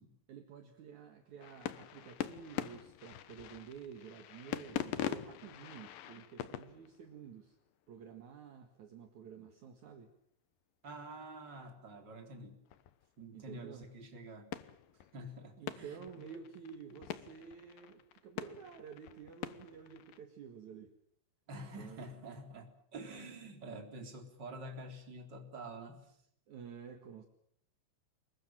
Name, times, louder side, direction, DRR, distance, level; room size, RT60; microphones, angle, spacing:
voice 1, 0.3-7.6 7.9-10.1 13.3-13.9 15.6-20.9 21.8-22.0 26.5-27.2, right 7 dB, 55° right, 6 dB, 2.2 m, -51 dB
sound 1, 1.4-7.4 12.7-13.1 13.8-14.0 14.5-15.3 15.7-20.2, left 12 dB, 80° left, 2.0 m, -43 dB
voice 2, 10.8-12.6 13.2-14.5 15.1-17.0 21.5-26.2, right 1 dB, 25° right, 4 dB, 3.7 m, -48 dB
26.0 x 22.5 x 7.6 m, 0.71 s
omnidirectional pair, 5.7 m